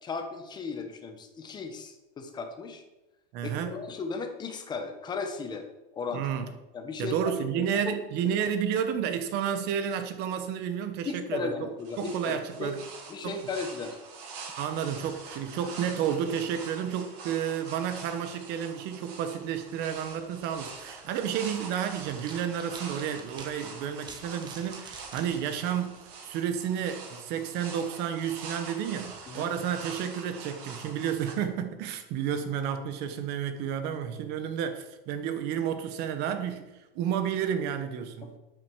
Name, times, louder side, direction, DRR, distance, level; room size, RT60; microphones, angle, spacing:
voice 1, 0.0-2.8 3.4-5.7 6.0-6.2 6.7-8.0 8.2-8.5 11.0-12.7 13.1-14.0 29.3-29.5, left 4 dB, 15° left, 6 dB, 1.1 m, -36 dB
voice 2, 3.3-3.7 6.1-6.5 7.0-11.7 12.0-12.8 13.2-13.4 14.6-38.3, right 8 dB, 35° right, 8 dB, 1.2 m, -31 dB
sound 1, 11.8-31.3, right 4 dB, 60° right, 5.0 m, -44 dB
sound 2, 19.4-26.4, right 4 dB, 15° right, 1.2 m, -51 dB
12.0 x 9.0 x 4.7 m, 1.0 s
supercardioid pair, 170°, 29 cm